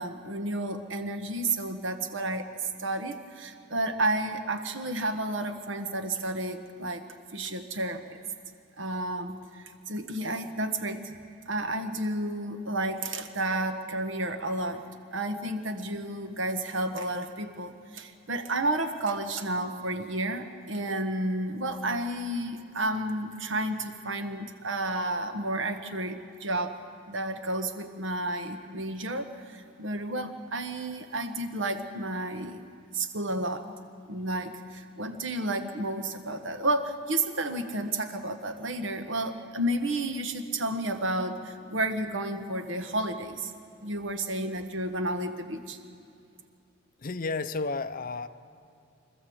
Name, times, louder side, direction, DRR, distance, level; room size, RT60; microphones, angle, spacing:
voice 1, 0.0-7.0 7.3-8.2 8.8-11.1 11.5-26.8 27.1-32.6 32.9-33.7 34.1-43.5 43.8-45.8, right 1 dB, 65° right, 7 dB, 1.4 m, -31 dB
voice 2, 47.0-48.3, left 3 dB, 45° left, 12 dB, 0.6 m, -32 dB
25.0 x 13.5 x 7.9 m, 2.5 s
head